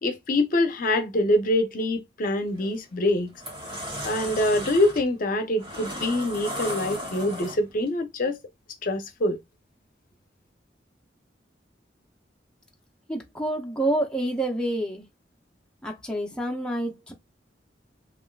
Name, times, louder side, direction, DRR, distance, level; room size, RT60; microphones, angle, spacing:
voice 1, 0.0-3.3 4.0-8.4 8.8-9.4, left 1 dB, 50° left, 0.6 m, -25 dB
sound 1, 2.5-2.7 3.2-7.9, equal, 30° right, 1.6 m, -35 dB
voice 2, 13.1-15.0 15.8-17.1, right 1 dB, 5° left, 0.5 m, -28 dB
3.3 x 2.4 x 2.3 m
head